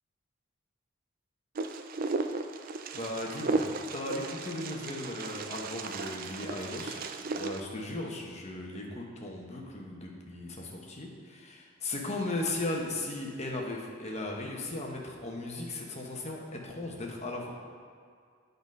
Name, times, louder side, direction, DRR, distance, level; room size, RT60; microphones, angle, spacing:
Wind, 1.5-7.6, right 3 dB, 45° right, 0.4 m, -35 dB
voice 1, 2.9-3.6 3.9-7.1 7.3-17.5, left 2 dB, 30° left, -1 dB, 1.0 m, -37 dB
8.7 x 4.0 x 5.3 m, 2.2 s
head